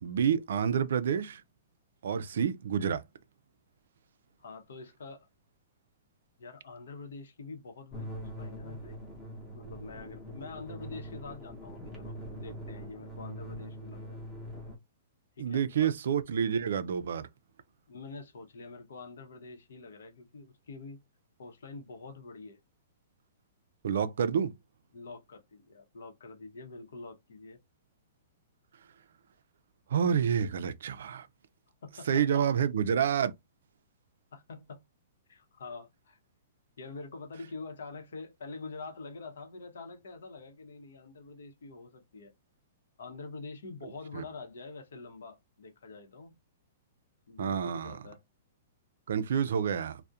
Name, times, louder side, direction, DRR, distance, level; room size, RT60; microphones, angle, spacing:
voice 1, 0.0-1.4 2.0-3.0 15.4-17.3 23.8-24.5 29.9-31.3 32.1-33.3 44.1-44.2 47.4-48.0 49.1-50.0, right 8 dB, 75° right, 0.3 m, -28 dB
voice 2, 4.4-5.3 6.4-9.0 9.5-14.2 15.4-15.9 17.9-21.0 21.4-22.6 24.9-27.6 31.8-32.5 34.3-34.8 35.3-36.2 36.8-42.3 43.0-46.4 47.3-48.2, left 3 dB, 90° left, 0.7 m, -46 dB
sound 1, 7.9-14.8, equal, 5° left, 0.7 m, -43 dB
2.3 x 2.0 x 2.7 m
hypercardioid pair, 165°, 0 cm